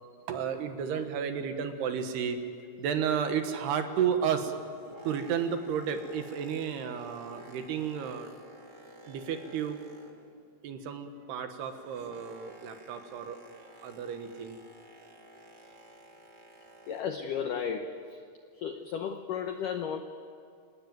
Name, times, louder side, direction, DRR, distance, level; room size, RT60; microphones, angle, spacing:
voice 1, 0.3-2.4 2.8-4.5 5.0-8.3 9.0-9.8 10.6-14.6, right 7 dB, 70° right, 7 dB, 3.2 m, -32 dB
Boat Water vehicle, 4.6-10.5 10.8-17.3 17.9-18.0, right 1 dB, 45° right, 1.3 m, -53 dB
voice 2, 16.9-18.2 18.6-20.0, left 7 dB, 85° left, 6 dB, 1.8 m, -34 dB
29.5 x 17.5 x 9.4 m, 2.3 s
omnidirectional pair, 5.2 m